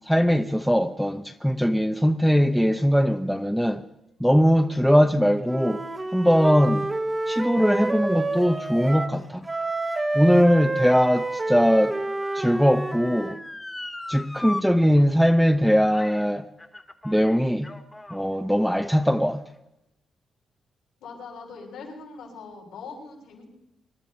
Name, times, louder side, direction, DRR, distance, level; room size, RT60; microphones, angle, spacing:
voice 1, 0.1-3.8 4.2-5.8 6.1-6.9 7.3-9.4 10.1-12.0 12.3-13.4 14.1-16.4 17.0-17.7 18.1-19.4, equal, ahead, 1.0 m, -20 dB
Wind instrument woodwind instrument, 5.4-9.2 9.4-13.4, right 2 dB, 20° right, 1.5 m, -29 dB
Motor vehicle (road) / Siren, 9.4-14.6 15.0-15.1 15.9-16.3 16.6-18.3 19.0-19.1, left 2 dB, 15° left, 1.9 m, -39 dB
voice 2, 21.0-23.4, left 4 dB, 90° left, 6.7 m, -41 dB
26.0 x 11.5 x 4.4 m
cardioid pair, 75°, 0 cm